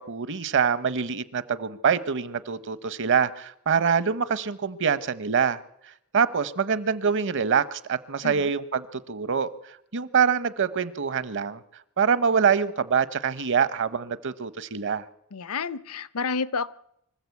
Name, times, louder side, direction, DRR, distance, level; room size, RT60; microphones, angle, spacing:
voice 1, 0.1-11.6 12.0-15.0, right 6 dB, 55° right, 14 dB, 0.9 m, -25 dB
voice 2, 8.2-8.5 15.3-16.7, left 5 dB, 75° left, 18 dB, 0.7 m, -30 dB
25.0 x 14.5 x 8.3 m, 0.77 s
head